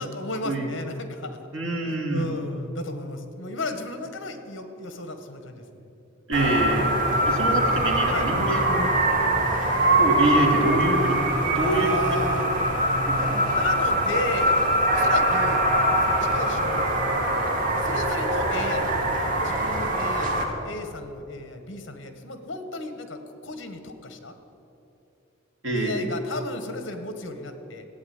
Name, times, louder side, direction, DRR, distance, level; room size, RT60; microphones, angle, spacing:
voice 1, 0.0-1.4 1.8-5.9 8.1-8.3 11.6-12.5 13.5-14.6 14.9-15.7 16.0-17.2 17.8-18.9 19.4-24.4 25.7-27.9, left 2 dB, 60° left, 8 dB, 1.5 m, -34 dB
voice 2, 1.5-2.3 6.3-6.9 7.3-8.9 10.0-11.2 11.5-12.2 13.1-13.6 25.6-26.1, right 2 dB, 75° right, -1 dB, 2.7 m, -25 dB
sound 1, 6.3-20.4, right 1 dB, 40° right, 1.9 m, -23 dB
15.0 x 8.8 x 9.5 m, 2.9 s
head